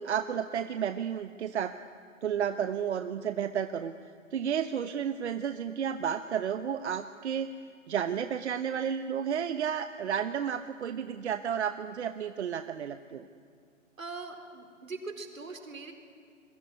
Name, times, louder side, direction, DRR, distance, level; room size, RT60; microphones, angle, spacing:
voice 1, 0.0-1.7 2.2-3.9 4.3-7.5 7.9-13.3, right 8 dB, 60° right, 10 dB, 1.2 m, -32 dB
voice 2, 14.0-15.9, right 3 dB, 80° right, 6 dB, 4.6 m, -41 dB
27.0 x 22.5 x 9.5 m, 2.3 s
hypercardioid pair, 135°, 39 cm